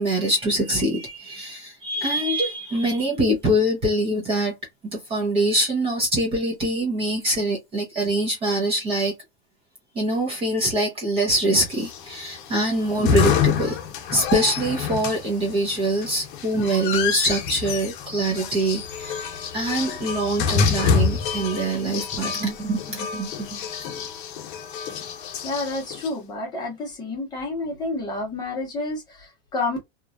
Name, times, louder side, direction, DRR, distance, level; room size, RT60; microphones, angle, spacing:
voice 1, 0.0-4.5 4.8-9.2 10.0-13.8 14.1-23.6, right 1 dB, 20° right, 0.7 m, -24 dB
sound 1, 11.8-26.1, left 6 dB, 50° left, 0.9 m, -27 dB
voice 2, 25.4-29.8, left 2 dB, 10° left, 0.9 m, -29 dB
3.0 x 2.4 x 2.4 m
supercardioid pair, 170°, 32 cm